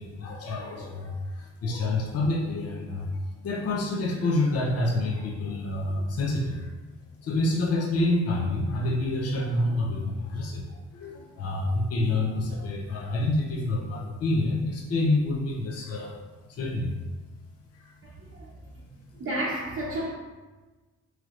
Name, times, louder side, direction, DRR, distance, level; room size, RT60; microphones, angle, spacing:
voice 1, 0.0-6.7 7.2-16.2 16.5-17.0 17.8-17.9, left 2 dB, 55° left, -1 dB, 0.7 m, -28 dB
voice 2, 18.0-18.5 19.1-20.1, right 1 dB, 45° right, -6 dB, 0.8 m, -32 dB
4.5 x 3.2 x 2.5 m, 1.2 s
cardioid pair, 90°, 30 cm